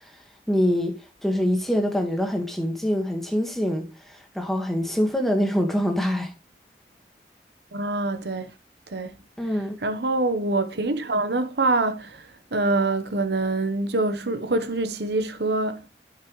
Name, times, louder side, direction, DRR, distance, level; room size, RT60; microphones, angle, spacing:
voice 1, 0.5-6.3 9.4-9.8, equal, ahead, 1.7 m, -24 dB
voice 2, 7.7-8.5 8.9-9.2 9.8-15.8, right 2 dB, 70° right, 1.1 m, -25 dB
11.5 x 5.8 x 3.2 m
head